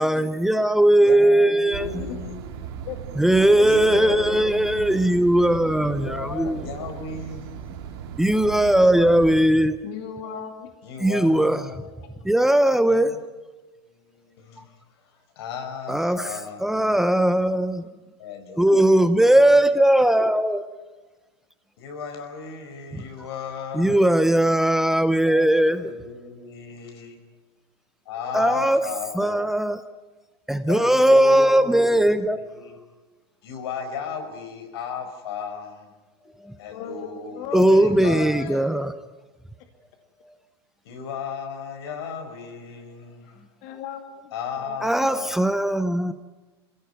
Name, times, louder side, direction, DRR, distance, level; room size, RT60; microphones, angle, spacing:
voice 1, 0.0-2.0 3.2-6.6 8.2-9.8 11.0-11.6 12.2-13.1 15.9-16.3 16.6-17.9 18.6-20.6 23.7-25.9 28.3-28.8 29.2-29.8 30.5-32.4 36.4-36.6 37.5-38.9 40.2-40.3 44.8-46.1, right 1 dB, 5° right, 10 dB, 0.7 m, -19 dB
voice 2, 1.0-2.4 3.6-4.9 5.8-7.5 8.8-9.4 10.8-12.1 12.9-13.2 13.9-16.6 18.2-19.2 21.8-24.1 25.2-27.1 28.0-29.4 30.7-32.0 32.4-32.7 33.4-35.9 36.6-38.3 40.8-43.4 44.3-45.5, left 5 dB, 75° left, 5 dB, 5.1 m, -36 dB
sound 1, 1.7-9.4, right 7 dB, 65° right, 3.3 m, -37 dB
voice 3, 1.8-2.2 2.8-3.0 3.6-3.7 3.9-4.5 9.8-10.7 18.6-18.8 28.2-28.5 29.2-29.4 36.2-38.8 43.6-44.8, left 9 dB, 55° left, 4 dB, 2.3 m, -36 dB
23.0 x 16.5 x 9.3 m, 1.2 s
supercardioid pair, 130°, 13 cm